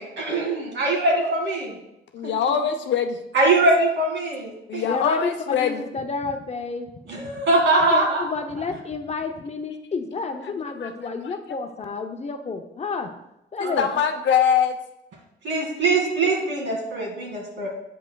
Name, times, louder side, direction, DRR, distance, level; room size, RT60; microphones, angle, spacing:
voice 1, 0.0-1.7 3.3-4.8 7.1-8.2 13.6-13.7 15.4-17.7, right 2 dB, 65° right, -1 dB, 2.1 m, -22 dB
voice 2, 2.1-3.2 4.7-5.8 10.5-11.3 13.6-14.8, left 7 dB, 65° left, 6 dB, 0.7 m, -23 dB
voice 3, 4.8-5.3 5.6-6.9 7.7-13.1 13.5-13.9, left 4 dB, 35° left, 6 dB, 0.6 m, -30 dB
8.5 x 5.4 x 2.3 m, 0.86 s
cardioid pair, 90°, 20 cm